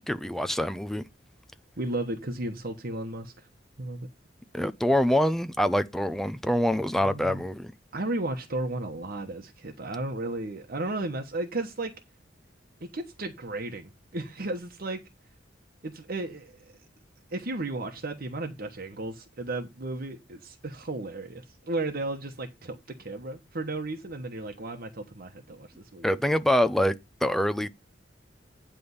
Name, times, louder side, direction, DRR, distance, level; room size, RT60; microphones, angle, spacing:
voice 1, 0.1-1.0 4.5-7.7 26.0-26.9 27.2-27.7, left 1 dB, ahead, 0.5 m, -25 dB
voice 2, 1.8-3.5 3.8-4.1 7.0-7.4 7.9-11.9 12.8-15.0 15.8-16.8 17.3-26.2, right 2 dB, 55° right, 1.1 m, -34 dB
9.6 x 3.5 x 6.9 m
head